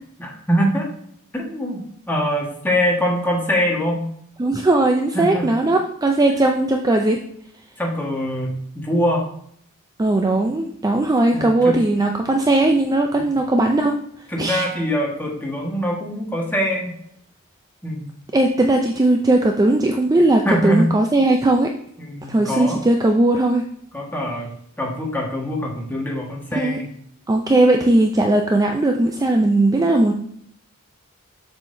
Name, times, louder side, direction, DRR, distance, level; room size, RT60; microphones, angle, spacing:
voice 1, 0.2-0.9 1.3-4.0 5.1-5.5 7.8-9.2 11.3-11.7 13.2-13.3 14.3-16.9 17.8-18.1 20.4-20.9 22.0-22.8 23.9-24.5 24.8-26.9, equal, 10° left, -2 dB, 1.4 m, -23 dB
voice 2, 4.4-7.2 10.0-14.0 14.4-14.7 18.3-21.7 22.3-23.7 26.6-26.8 27.3-30.1, right 2 dB, 15° right, 3 dB, 0.4 m, -18 dB
7.3 x 5.6 x 2.6 m, 0.67 s
head